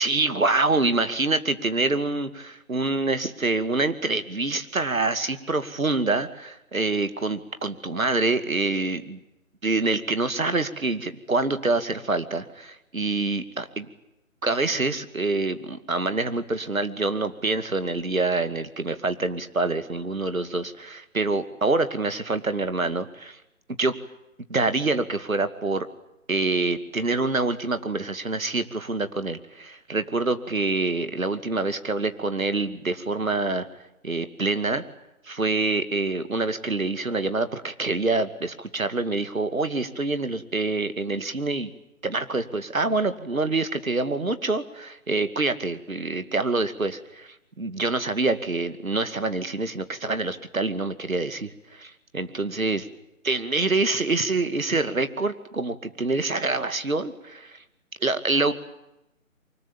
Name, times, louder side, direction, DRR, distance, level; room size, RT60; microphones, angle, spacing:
voice 1, 0.0-9.2 9.6-13.9 14.4-23.4 23.8-23.9 24.5-25.9 26.3-33.7 34.0-34.8 35.3-41.7 42.0-52.9 53.2-57.6 58.0-58.5, right 3 dB, 75° right, 10 dB, 2.5 m, -26 dB
24.5 x 21.0 x 9.1 m, 0.88 s
figure-of-eight pair, 150°, 41 cm